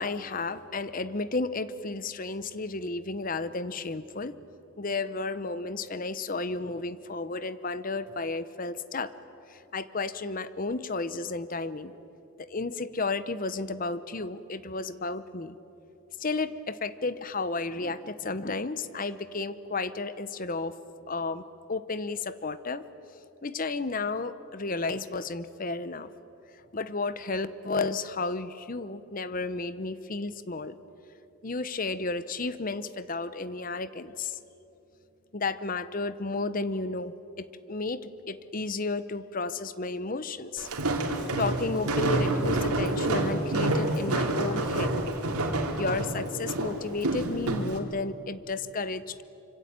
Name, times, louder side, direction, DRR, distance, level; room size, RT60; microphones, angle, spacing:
voice 1, 0.0-4.3 4.8-9.1 9.5-11.9 12.4-15.6 16.2-20.7 21.1-21.4 21.7-22.9 23.4-26.1 26.7-30.8 31.4-34.4 35.3-40.7 41.4-44.9 45.8-49.2, left 3 dB, 40° left, 14 dB, 0.8 m, -32 dB
Walk footsteps, 40.6-47.8, right 2 dB, 90° right, 3.1 m, -28 dB
25.5 x 25.5 x 8.8 m, 3.0 s
head